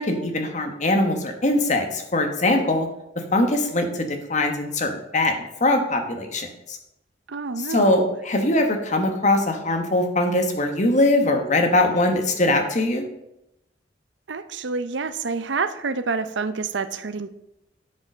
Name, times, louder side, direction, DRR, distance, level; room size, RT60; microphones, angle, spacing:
voice 1, 0.0-2.9 3.3-5.3 5.6-6.8 7.6-13.0, left 2 dB, 45° left, 5 dB, 1.4 m, -22 dB
voice 2, 7.3-8.1 14.3-17.3, right 4 dB, 90° right, 12 dB, 0.7 m, -28 dB
9.8 x 5.3 x 6.2 m, 0.85 s
head